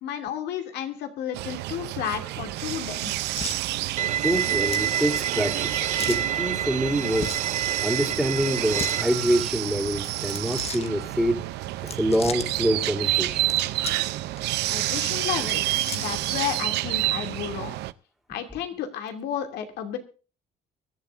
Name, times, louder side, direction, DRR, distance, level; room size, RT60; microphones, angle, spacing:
voice 1, 0.0-3.3 14.7-17.8 18.3-20.0, left 9 dB, 80° left, 6 dB, 2.7 m, -32 dB
sound 1, 1.3-17.9, right 17 dB, 80° right, 0.7 m, -29 dB
sound 2, 3.3-3.6 4.6-4.9 6.0-6.3 7.1-7.5 8.6-9.0 10.2-10.9 11.8-12.5 13.3-14.1 14.4-14.5 15.3-16.2, left 6 dB, 35° left, 1.3 m, -36 dB
voice 2, 3.9-13.5, equal, ahead, -6 dB, 3.2 m, -26 dB
Bowed string instrument, 4.0-9.0, right 10 dB, 45° right, 0.8 m, -28 dB
23.5 x 11.5 x 2.6 m, 0.35 s
cardioid pair, 110°, 17 cm